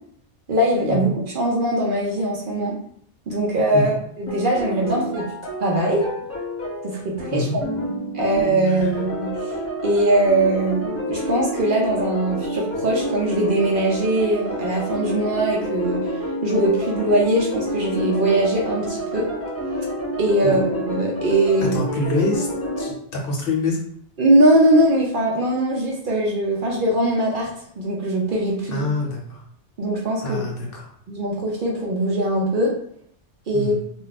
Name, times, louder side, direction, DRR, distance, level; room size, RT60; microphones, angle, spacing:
voice 1, 0.5-2.8 3.3-5.3 5.6-6.0 6.8-7.7 8.1-9.6 9.8-16.1 16.4-19.3 20.2-21.8 24.2-27.5 27.8-28.9 29.8-30.4 31.1-32.7 33.5-33.7, right 1 dB, 55° right, -2 dB, 0.7 m, -21 dB
sound 1, 4.3-22.9, equal, 15° left, 0.7 m, -28 dB
voice 2, 8.7-9.0 20.4-20.7 21.7-22.5 22.8-23.8 28.7-29.4 30.2-30.9 33.5-33.8, left 2 dB, 60° left, -1 dB, 0.9 m, -26 dB
2.4 x 2.1 x 3.9 m, 0.65 s
omnidirectional pair, 1.2 m